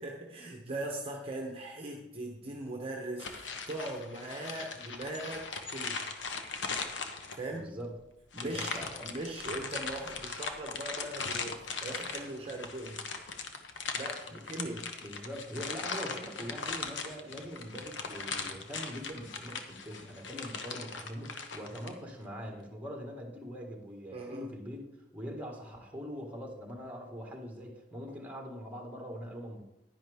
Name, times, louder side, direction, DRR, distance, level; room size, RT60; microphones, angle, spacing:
voice 1, 0.0-6.1 7.3-7.7 8.3-13.0 13.9-14.8 24.1-24.4, right 2 dB, 30° right, 1 dB, 1.1 m, -40 dB
sound 1, 3.2-7.6 8.3-21.9, left 4 dB, 90° left, 1.1 m, -39 dB
voice 2, 7.5-7.9 8.4-9.1 14.3-24.8 25.1-29.6, equal, 10° right, 1 dB, 1.8 m, -43 dB
10.5 x 10.0 x 3.5 m, 0.83 s
head